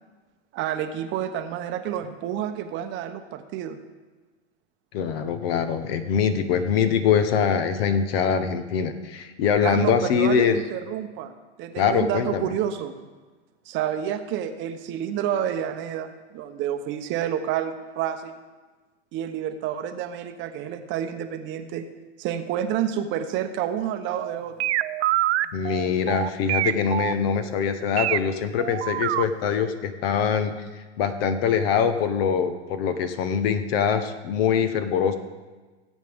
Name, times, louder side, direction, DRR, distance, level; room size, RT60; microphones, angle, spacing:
voice 1, 0.5-3.8 9.6-11.3 11.6-13.0 13.7-18.4 19.1-21.9 22.2-24.5, right 10 dB, 35° right, 8 dB, 0.8 m, -29 dB
voice 2, 4.9-10.6 11.8-12.5 25.5-35.2, left 7 dB, 55° left, 10 dB, 1.1 m, -23 dB
sound 1, 24.2-28.2 28.6-29.2 29.7-29.8, right 16 dB, 65° right, 0.5 m, -25 dB
17.5 x 8.2 x 3.6 m, 1.3 s
hypercardioid pair, 125°, 35 cm